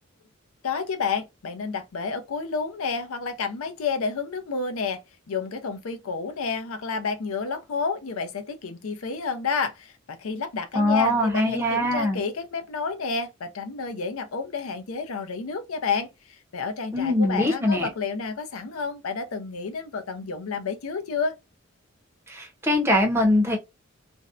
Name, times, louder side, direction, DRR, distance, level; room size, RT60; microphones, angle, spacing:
voice 1, 0.6-5.0 5.3-21.4, left 5 dB, 80° left, 0.5 m, -30 dB
voice 2, 10.7-12.2 16.9-17.9 22.3-23.6, left 1 dB, 10° right, 0.6 m, -22 dB
2.6 x 2.0 x 2.4 m
head